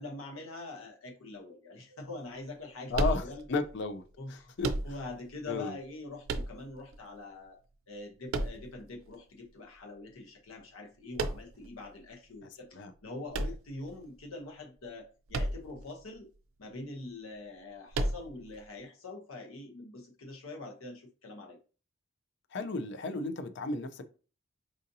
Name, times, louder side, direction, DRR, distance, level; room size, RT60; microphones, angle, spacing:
voice 1, 0.0-3.4 4.2-4.5 4.8-7.6 7.9-16.3 16.6-21.6, left 2 dB, 85° left, 0.8 m, -44 dB
voice 2, 2.9-4.7 5.5-5.8 12.4-12.9 22.5-24.0, left 3 dB, 60° left, 0.5 m, -34 dB
sound 1, 2.9-3.7 4.6-5.3 6.3-7.0 8.3-9.1 11.2-11.7 13.3-14.2 15.3-15.9 16.1-16.2 17.9-18.6, right 2 dB, 80° right, 0.4 m, -33 dB
4.9 x 2.6 x 2.6 m
head